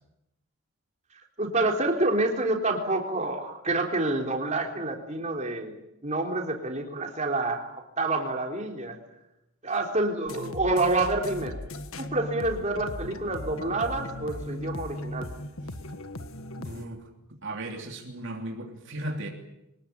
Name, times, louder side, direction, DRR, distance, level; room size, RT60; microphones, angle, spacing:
voice 1, 1.4-5.8 6.0-9.0 9.6-11.5 12.0-15.3, right 2 dB, 30° right, 3.8 m, -28 dB
sound 1, 10.3-16.9, left 1 dB, 70° left, 1.6 m, -38 dB
voice 2, 16.6-17.0 17.4-19.3, right 1 dB, 55° right, 3.1 m, -36 dB
24.5 x 20.5 x 9.4 m
head